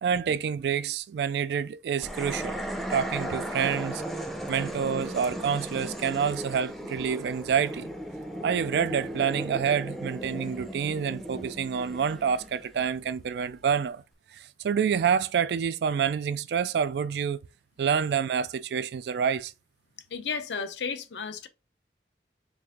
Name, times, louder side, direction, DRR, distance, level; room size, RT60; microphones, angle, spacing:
voice 1, 0.0-2.6 2.9-4.0 4.5-7.9 8.4-14.0 14.3-17.4 17.8-19.5, right 7 dB, 70° right, 0.3 m, -27 dB
sound 1, 2.0-13.4, right 1 dB, ahead, 0.5 m, -36 dB
voice 2, 20.1-21.5, left 5 dB, 85° left, 0.6 m, -33 dB
4.7 x 2.5 x 3.5 m
head